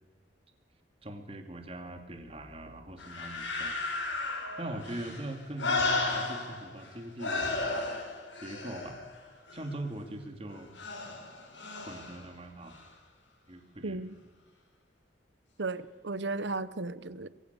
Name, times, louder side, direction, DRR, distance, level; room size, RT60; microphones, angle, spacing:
voice 1, 1.0-3.8 4.6-7.6 8.3-9.0 9.5-10.7 11.8-12.8 13.5-14.0, right 1 dB, 30° right, 5 dB, 2.6 m, -41 dB
sound 1, 3.0-6.9 7.2-9.7 10.8-12.2 12.7-12.8, left 3 dB, 80° left, 5.8 m, -34 dB
voice 2, 13.8-14.2 15.6-17.3, right 3 dB, 75° right, 16 dB, 1.0 m, -35 dB
22.5 x 16.5 x 7.0 m, 1.3 s
head